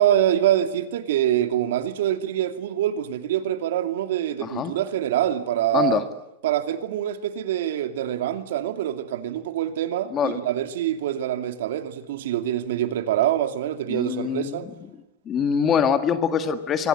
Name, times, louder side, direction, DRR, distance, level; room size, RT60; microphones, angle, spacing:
voice 1, 0.0-6.1 6.4-14.7, right 11 dB, 75° right, 2.6 m, -25 dB
voice 2, 4.4-4.7 5.7-6.0 10.1-10.4 13.9-14.7 15.3-16.9, left 7 dB, 20° left, 1.8 m, -24 dB
26.0 x 25.0 x 8.8 m
supercardioid pair, 170°, 0 cm